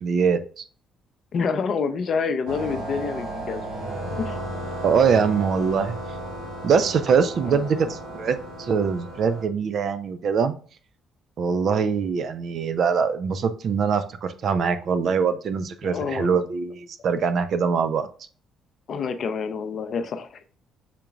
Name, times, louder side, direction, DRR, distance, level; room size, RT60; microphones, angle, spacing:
voice 1, 0.0-0.6 4.8-5.9 6.6-10.5 11.4-18.1, right 6 dB, 55° right, 10 dB, 0.5 m, -23 dB
voice 2, 1.3-3.6 4.2-4.4 7.4-7.9 15.8-16.4 18.9-20.4, left 5 dB, 50° left, 9 dB, 0.5 m, -28 dB
sound 1, 2.5-9.4, right 1 dB, 85° right, 2.2 m, -34 dB
5.9 x 3.8 x 2.3 m, 0.40 s
figure-of-eight pair, 45°, 0 cm